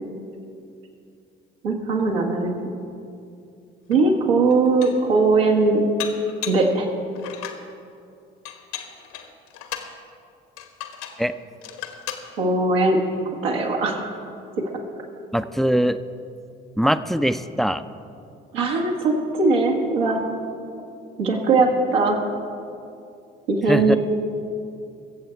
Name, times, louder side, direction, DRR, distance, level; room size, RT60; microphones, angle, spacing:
voice 1, 1.6-2.5 3.9-5.9 6.5-6.9 12.4-13.0 13.4-14.1 14.6-14.7 18.5-20.2 20.7-20.8 21.2-22.2 23.5-24.0, right 3 dB, 80° right, 0 dB, 1.6 m, -20 dB
Dishes pots and pans, 3.9-4.0 4.5-5.1 6.0-6.7 7.2-7.7 8.5-9.9 10.6-11.2 11.6-12.3, left 9 dB, 70° left, 1.2 m, -35 dB
voice 2, 15.3-16.0 16.8-17.8 23.7-24.0, equal, ahead, 12 dB, 0.5 m, -21 dB
22.5 x 7.6 x 4.5 m, 2.5 s
figure-of-eight pair, 50°, 29 cm